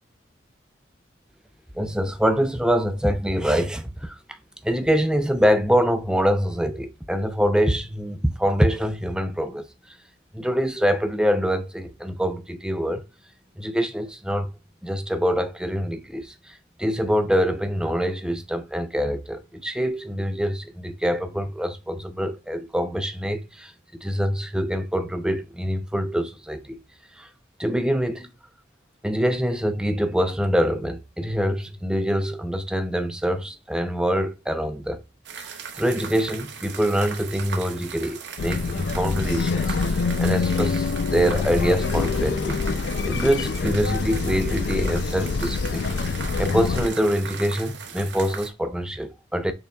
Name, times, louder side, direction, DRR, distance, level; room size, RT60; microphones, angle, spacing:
voice 1, 1.7-4.2 4.6-9.7 10.3-13.0 13.6-14.5 14.8-23.7 24.0-26.8 27.2-27.3 27.6-28.3 29.0-35.0 35.4-45.8 46.4-49.5, equal, 5° right, 0.5 m, -25 dB
sound 1, 35.2-48.5, right 6 dB, 75° right, 0.8 m, -38 dB
sound 2, 38.4-46.9, left 4 dB, 70° left, 0.4 m, -25 dB
6.5 x 3.6 x 2.2 m
head